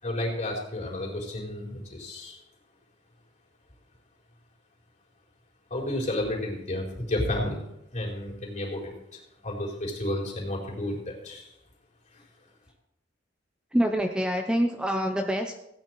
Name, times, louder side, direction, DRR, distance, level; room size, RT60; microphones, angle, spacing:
voice 1, 0.0-2.4 5.7-7.6 7.9-11.5, left 1 dB, 40° left, -2 dB, 4.2 m, -32 dB
voice 2, 13.7-15.6, equal, 5° right, 4 dB, 0.7 m, -26 dB
16.5 x 9.3 x 4.7 m, 0.85 s
head